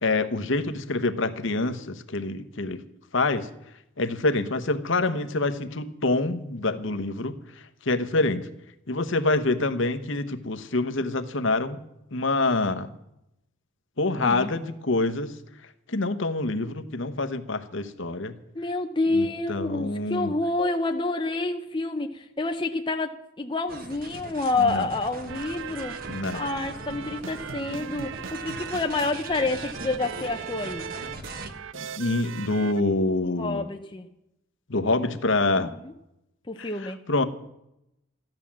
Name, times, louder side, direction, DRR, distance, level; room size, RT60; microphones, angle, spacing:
voice 1, 0.0-2.8 3.1-3.5 4.0-8.5 8.9-11.8 12.1-12.9 14.0-15.4 15.9-18.3 19.1-20.3 24.6-24.9 26.1-26.5 31.7-33.6 34.7-35.7 36.6-37.2, left 2 dB, 60° left, 9 dB, 1.0 m, -26 dB
voice 2, 14.2-14.5 18.5-30.9 33.4-34.1 36.5-37.0, left 2 dB, 20° left, 4 dB, 0.6 m, -28 dB
sound 1, 23.7-31.5, right 2 dB, 40° right, 1.3 m, -40 dB
sound 2, 25.3-32.8, right 7 dB, 60° right, 0.5 m, -39 dB
14.5 x 10.5 x 7.4 m, 0.83 s
head